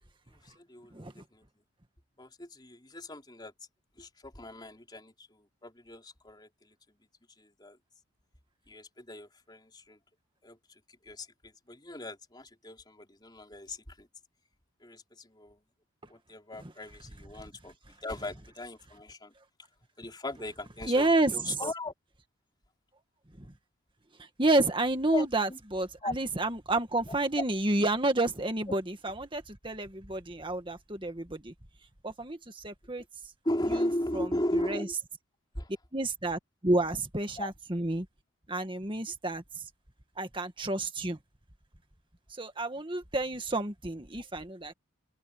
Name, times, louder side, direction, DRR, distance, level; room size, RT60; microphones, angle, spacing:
voice 1, 0.3-1.4 2.2-3.5 4.0-6.7 7.4-7.8 8.7-10.0 10.4-10.6 11.0-14.1 14.8-15.6 16.1-19.3 20.0-21.9 25.1-25.6 26.0-26.1 27.4-27.5 33.4-34.9 35.5-35.7 37.4-37.5, left 1 dB, 20° left, 3.8 m, -37 dB
voice 2, 0.9-1.2 20.8-21.6 23.4-23.5 24.4-31.5 32.0-33.0 34.1-34.3 34.5-34.9 35.9-38.1 38.5-39.4 40.2-41.2 42.4-44.7, right 2 dB, 25° right, 1.9 m, -30 dB
head